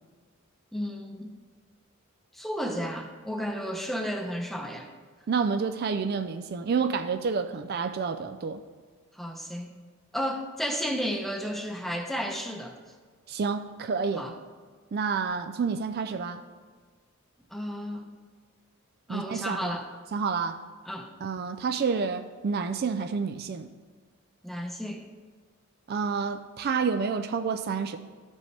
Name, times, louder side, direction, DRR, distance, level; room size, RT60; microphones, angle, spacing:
voice 1, 0.7-1.3 2.3-4.9 9.1-9.7 10.1-12.8 14.2-14.3 17.5-18.1 19.1-19.9 20.9-21.1 24.4-25.1, equal, ahead, 3 dB, 0.7 m, -33 dB
voice 2, 5.3-8.6 13.3-14.3 14.9-16.4 19.1-19.7 20.1-20.6 21.2-23.7 25.9-28.0, right 5 dB, 50° right, 8 dB, 0.4 m, -29 dB
13.0 x 5.2 x 3.3 m, 1.5 s
head